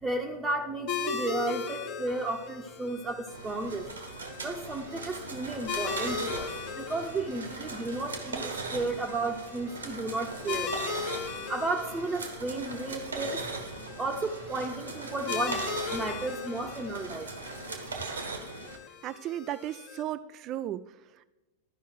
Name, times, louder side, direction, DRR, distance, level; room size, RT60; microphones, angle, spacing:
voice 1, 0.0-3.9 4.4-11.1 11.5-13.5 14.0-17.3, right 2 dB, 15° right, 0 dB, 0.8 m, -33 dB
sound 1, 0.9-20.0, left 6 dB, 40° left, 1.1 m, -39 dB
sound 2, 3.3-18.8, right 3 dB, 75° right, 1.4 m, -39 dB
voice 2, 19.0-21.3, right 12 dB, 35° right, 14 dB, 0.3 m, -36 dB
12.5 x 5.5 x 4.6 m, 1.1 s
figure-of-eight pair, 90°, 0 cm